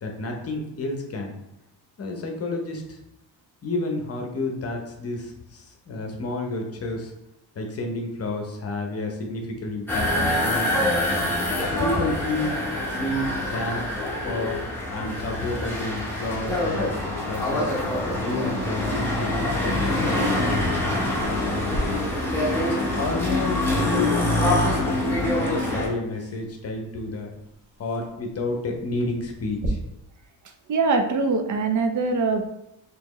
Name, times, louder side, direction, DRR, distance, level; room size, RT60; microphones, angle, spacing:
voice 1, 0.0-1.3 2.0-3.0 3.6-7.1 7.5-11.2 11.8-12.6 12.9-13.9 14.2-14.6 14.9-16.8 17.3-17.7 18.1-20.5 21.2-22.1 22.6-24.1 24.7-27.3 27.8-29.8, left 2 dB, 35° left, 2 dB, 0.7 m, -30 dB
sound 1, 9.9-25.9, left 1 dB, 5° left, 0.8 m, -25 dB
sound 2, 21.2-29.7, right 1 dB, 80° right, 1.1 m, -41 dB
voice 2, 30.7-32.4, right 4 dB, 45° right, 5 dB, 0.5 m, -22 dB
4.3 x 2.9 x 3.0 m, 0.85 s
cardioid pair, 140°, 41 cm